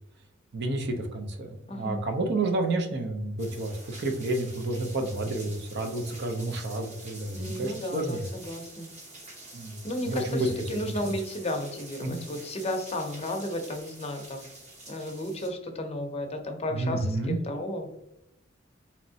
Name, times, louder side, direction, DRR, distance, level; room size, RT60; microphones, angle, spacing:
voice 1, 0.5-8.2 9.5-10.5 11.0-11.1 12.0-12.2 16.7-17.4, right 2 dB, 60° right, 5 dB, 0.6 m, -30 dB
voice 2, 1.7-2.4 5.4-5.5 7.3-8.9 9.8-14.4 14.9-17.9, left 1 dB, 30° left, 4 dB, 0.6 m, -34 dB
sound 1, 3.4-15.5, right 2 dB, 35° right, 1.0 m, -47 dB
4.3 x 3.0 x 2.7 m, 0.85 s
head